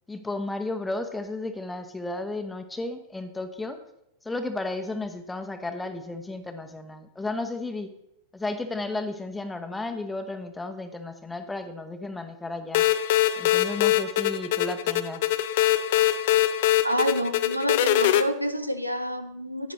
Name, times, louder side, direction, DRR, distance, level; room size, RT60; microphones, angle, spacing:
voice 1, 0.1-3.8 4.2-7.9 8.3-12.8 13.4-15.3, left 2 dB, 10° left, 7 dB, 0.9 m, -33 dB
sound 1, 12.7-18.2, left 14 dB, 50° left, 0.5 m, -22 dB
voice 2, 16.8-19.7, equal, 85° right, 9 dB, 0.7 m, -28 dB
10.5 x 9.3 x 3.1 m, 0.80 s
figure-of-eight pair, 90°, 0 cm